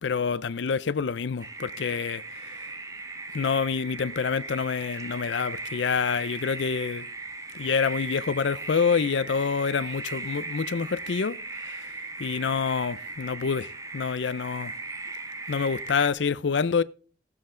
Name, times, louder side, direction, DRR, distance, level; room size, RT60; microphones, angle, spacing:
voice 1, 0.0-2.8 3.3-7.1 7.5-14.8 15.5-16.8, left 5 dB, 75° left, 0.5 m, -27 dB
sound 1, 1.4-16.1, right 3 dB, 20° right, 0.8 m, -38 dB
15.5 x 7.6 x 3.8 m
head